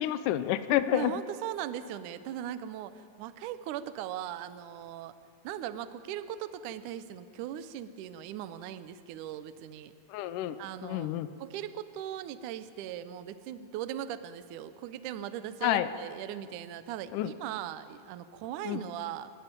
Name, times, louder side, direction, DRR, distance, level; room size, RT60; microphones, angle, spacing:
voice 1, 0.0-1.1 10.1-10.6 10.8-11.3 15.6-15.9 17.1-17.3 18.7-18.8, left 13 dB, 85° left, 11 dB, 1.8 m, -29 dB
voice 2, 0.9-5.1 5.4-9.9 10.6-19.3, right 11 dB, 80° right, 12 dB, 1.8 m, -39 dB
27.5 x 12.5 x 9.0 m, 2.2 s
omnidirectional pair, 4.5 m